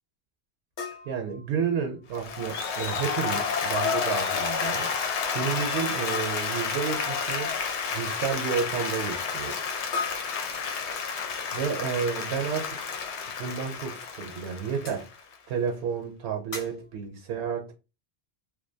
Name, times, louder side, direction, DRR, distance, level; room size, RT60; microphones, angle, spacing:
sound 1, 0.8-2.1 3.4-3.8 4.1-4.3 4.6-4.7 6.1-6.8 9.9-11.1 13.1-13.2 13.8-13.9 14.8-15.1 16.5-17.0, left 5 dB, 50° left, 0.8 m, -39 dB
voice 1, 1.1-4.9 5.3-7.5 7.9-9.7 11.5-12.8 13.4-15.1 15.5-17.7, right 6 dB, 80° right, 0.8 m, -31 dB
Applause, 2.1-15.3, left 5 dB, 90° left, 0.9 m, -30 dB
2.5 x 2.2 x 2.6 m
omnidirectional pair, 1.1 m